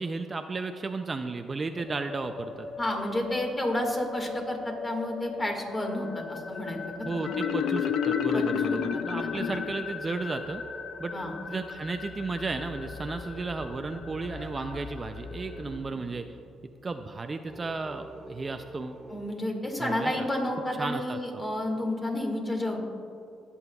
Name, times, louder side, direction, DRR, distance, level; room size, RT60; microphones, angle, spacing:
voice 1, 0.0-2.7 7.1-10.6 11.0-11.1 11.5-16.3 16.8-19.0 19.8-20.3 20.8-21.2, right 3 dB, 30° right, 7 dB, 0.4 m, -34 dB
sound 1, 1.7-15.8, left 5 dB, 55° left, 0.8 m, -40 dB
voice 2, 2.8-6.8 7.1-7.4 8.3-8.6 9.2-9.5 11.1-11.3 19.1-22.8, left 1 dB, 20° left, 1 dB, 1.8 m, -31 dB
Marimba xylophone, 7.2-10.0, left 8 dB, 75° left, 0.4 m, -29 dB
sound 2, 9.2-11.9 12.5-16.3 17.5-19.2, right 1 dB, 10° right, 1.6 m, -47 dB
19.5 x 7.0 x 2.3 m, 2.8 s
cardioid pair, 90°, 0 cm